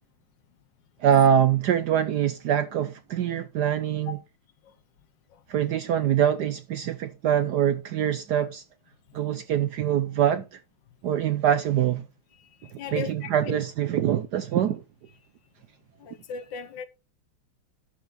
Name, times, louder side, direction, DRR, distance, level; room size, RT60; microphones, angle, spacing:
voice 1, 1.0-4.2 5.5-8.6 9.1-10.6 11.0-12.0 12.9-14.8, right 9 dB, 70° right, 1.0 m, -24 dB
voice 2, 12.6-13.6 16.0-16.9, left 8 dB, 65° left, 1.3 m, -37 dB
11.5 x 5.7 x 3.9 m
omnidirectional pair, 2.3 m